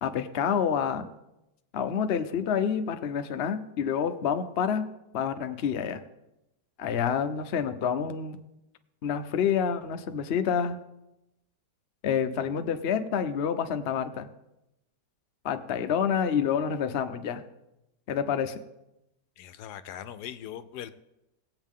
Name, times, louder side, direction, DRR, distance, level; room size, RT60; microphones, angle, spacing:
voice 1, 0.0-1.1 1.7-4.8 5.1-6.0 6.8-8.4 9.0-10.8 12.0-14.3 15.4-17.4 18.1-18.6, left 7 dB, 55° left, 8 dB, 0.7 m, -28 dB
voice 2, 19.4-20.9, left 10 dB, 75° left, 13 dB, 1.1 m, -40 dB
18.0 x 8.0 x 3.7 m, 0.92 s
omnidirectional pair, 1.9 m